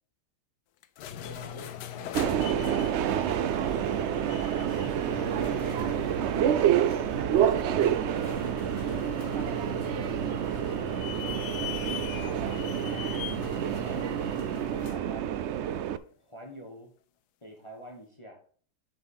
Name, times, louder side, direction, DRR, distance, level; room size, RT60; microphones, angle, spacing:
sound 1, 0.8-15.1, left 11 dB, 85° left, 1.3 m, -41 dB
voice 1, 1.2-3.5 4.4-6.4 6.9-8.3, equal, 20° right, 1.1 m, -47 dB
Subway metro underground, 2.1-16.0, right 10 dB, 80° right, 0.6 m, -28 dB
voice 2, 8.8-14.4 14.7-15.4 16.2-16.9 17.4-18.4, equal, 20° left, 1.4 m, -47 dB
7.2 x 5.3 x 5.4 m
omnidirectional pair, 1.7 m